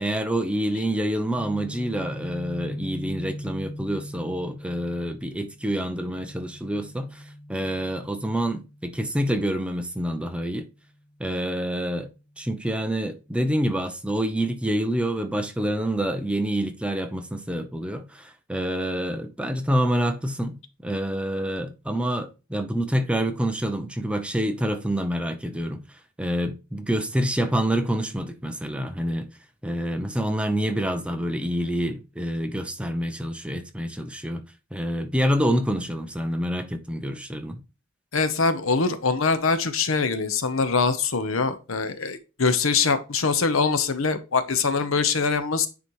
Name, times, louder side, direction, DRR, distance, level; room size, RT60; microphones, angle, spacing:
voice 1, 0.0-7.2 7.5-10.7 11.2-12.1 12.4-25.8 26.2-29.3 29.6-34.4 34.7-37.6, equal, 5° right, 0.7 m, -27 dB
Guitar, 1.4-9.2, equal, 40° right, 2.9 m, -40 dB
voice 2, 38.1-45.7, left 4 dB, 75° left, 0.9 m, -23 dB
9.6 x 4.2 x 3.1 m
head